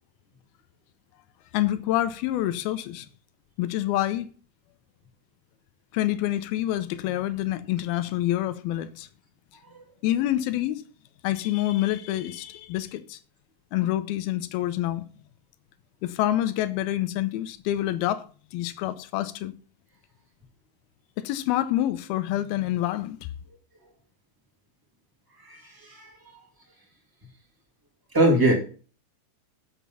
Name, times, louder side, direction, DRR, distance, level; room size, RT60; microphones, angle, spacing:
voice 1, 1.5-3.1 3.6-4.3 5.9-9.1 10.0-10.8 11.2-13.2 13.7-15.0 16.0-18.3 18.5-19.5 21.2-23.3, left 14 dB, 85° left, 2.5 m, -27 dB
voice 2, 25.4-26.1 28.1-28.5, right 1 dB, 10° right, 1.6 m, -22 dB
7.5 x 7.1 x 5.6 m
omnidirectional pair, 4.5 m